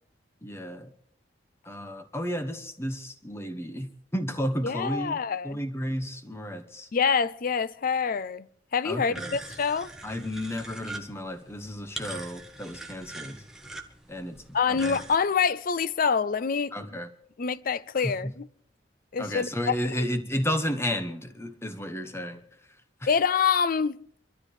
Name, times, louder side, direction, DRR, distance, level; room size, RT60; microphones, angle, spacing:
voice 1, 0.4-0.9 1.6-5.2 5.4-6.9 8.8-9.3 10.0-13.4 14.1-15.0 16.7-17.1 18.0-18.3 19.2-22.4 23.0-23.1, equal, 15° left, 1.1 m, -32 dB
voice 2, 4.6-5.6 6.9-8.5 8.7-9.9 14.5-16.8 17.4-18.5 19.1-19.9 23.1-24.0, left 6 dB, 50° left, 0.5 m, -26 dB
sound 1, 9.1-15.2, right 2 dB, 5° right, 1.1 m, -42 dB
25.0 x 12.5 x 3.3 m
head